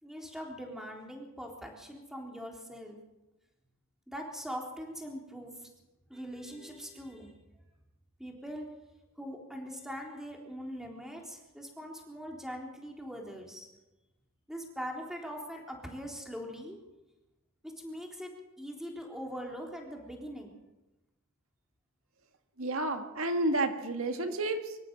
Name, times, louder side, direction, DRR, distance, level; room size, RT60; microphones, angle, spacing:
voice 1, 0.0-3.0 4.1-5.7 6.1-7.3 8.2-8.7 9.2-13.7 14.5-16.8 17.6-18.3 18.6-20.6, equal, ahead, 0 dB, 3.6 m, -42 dB
voice 2, 22.6-24.8, right 2 dB, 75° right, 6 dB, 1.8 m, -31 dB
25.0 x 14.0 x 7.8 m, 1.0 s
head